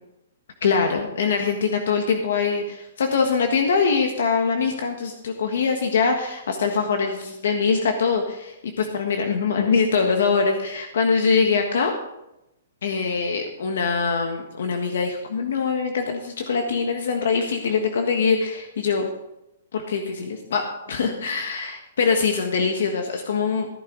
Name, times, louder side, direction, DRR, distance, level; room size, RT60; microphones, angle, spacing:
voice 1, 0.6-11.9 12.8-19.0 19.7-23.7, left 5 dB, 70° left, 4 dB, 1.5 m, -23 dB
14.5 x 9.8 x 4.0 m, 0.89 s
hypercardioid pair, 170°, 0 cm